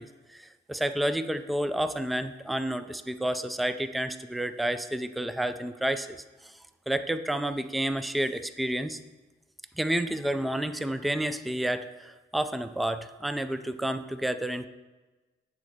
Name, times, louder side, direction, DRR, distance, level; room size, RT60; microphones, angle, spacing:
voice 1, 0.0-6.5 6.9-9.0 9.8-14.7, right 1 dB, ahead, 11 dB, 0.4 m, -30 dB
9.8 x 4.1 x 6.5 m, 1.2 s
cardioid pair, 90°, 20 cm